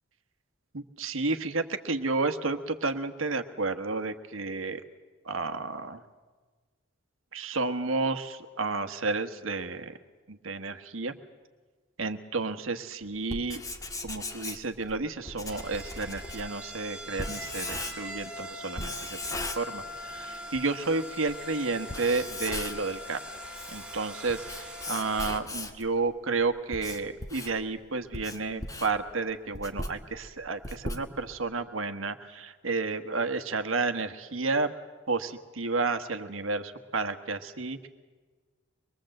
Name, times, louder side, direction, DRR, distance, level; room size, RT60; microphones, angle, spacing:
voice 1, 0.7-4.8 5.2-6.0 7.3-10.0 10.3-11.1 12.0-13.6 14.0-23.2 23.7-34.7 35.1-37.9, right 3 dB, 80° right, 9 dB, 1.4 m, -31 dB
Writing, 13.2-18.2 18.8-20.2 20.5-20.6 21.3-21.4 21.8-23.0 23.4-25.9 26.4-31.5, left 2 dB, 15° left, 1.8 m, -38 dB
sound 1, 15.1-25.4, equal, 5° right, 2.5 m, -42 dB
24.5 x 22.5 x 7.8 m, 1.4 s
head